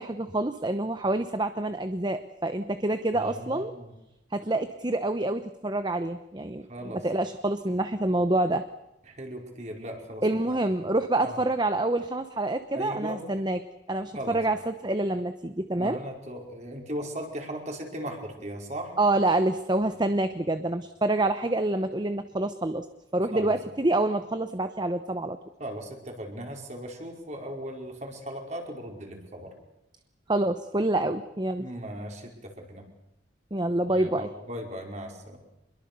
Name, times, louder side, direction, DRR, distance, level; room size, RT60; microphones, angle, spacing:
voice 1, 0.0-3.7 4.3-8.6 10.2-13.6 13.9-16.0 19.0-22.9 23.1-25.4 30.3-31.7 33.5-34.3, right 2 dB, 25° right, 10 dB, 0.9 m, -27 dB
voice 2, 3.1-3.9 6.7-7.0 9.1-10.2 11.2-11.4 12.7-13.2 14.1-14.4 15.8-18.9 23.3-23.5 25.6-29.5 31.6-32.9 33.9-35.4, right 1 dB, 40° right, 2 dB, 4.9 m, -37 dB
26.0 x 22.0 x 6.8 m, 0.90 s
head